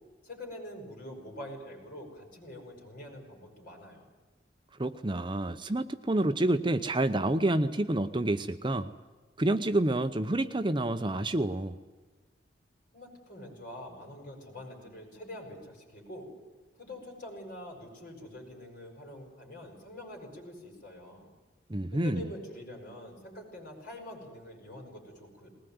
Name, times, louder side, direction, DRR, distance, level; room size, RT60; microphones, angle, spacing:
voice 1, 0.2-4.1 12.9-16.3 16.8-21.3 21.9-25.5, left 1 dB, 45° left, 1 dB, 7.9 m, -45 dB
voice 2, 4.8-8.9 9.4-11.7 21.7-22.3, right 1 dB, 25° right, 10 dB, 0.7 m, -28 dB
20.5 x 20.5 x 9.5 m, 1.3 s
head